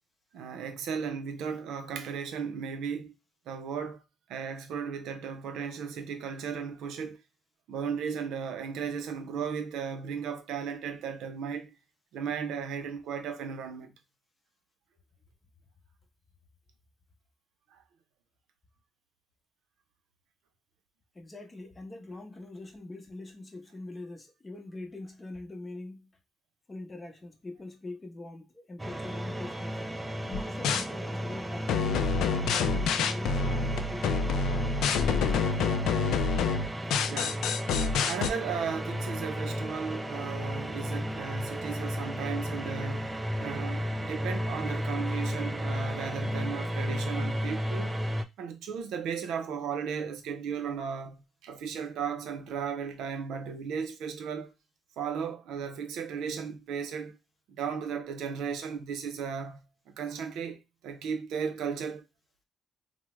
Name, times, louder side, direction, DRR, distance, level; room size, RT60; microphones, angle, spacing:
voice 1, 0.3-3.1 3.5-4.0 4.3-7.2 7.7-11.7 12.1-13.9 17.7-17.8 37.1-37.5 38.1-47.9 48.4-54.5 55.0-57.2 57.5-62.1, right 6 dB, 85° right, 0.5 m, -35 dB
voice 2, 21.2-26.0 26.7-28.4 28.7-29.7 30.2-34.6 35.0-36.1, left 2 dB, 25° left, 0.8 m, -43 dB
sound 1, 28.8-48.2, equal, 15° right, 0.4 m, -34 dB
sound 2, 30.3-30.9 31.7-38.3, left 5 dB, 85° left, 0.3 m, -27 dB
3.4 x 2.0 x 3.0 m
cardioid pair, 90°, 0 cm